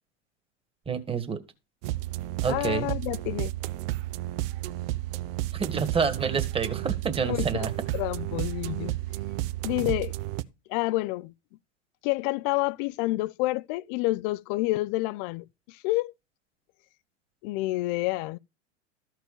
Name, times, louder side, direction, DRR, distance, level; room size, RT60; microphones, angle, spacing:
voice 1, 0.9-1.4 2.4-2.9 5.5-7.7, right 5 dB, 15° right, 1.8 m, -28 dB
sound 1, 1.8-10.4, right 16 dB, 50° right, 0.8 m, -32 dB
voice 2, 2.5-3.5 7.2-8.9 9.6-10.1 10.7-11.3 12.0-16.1 17.4-18.4, left 20 dB, 45° left, 0.6 m, -29 dB
13.5 x 4.7 x 6.8 m
hypercardioid pair, 95°, 36 cm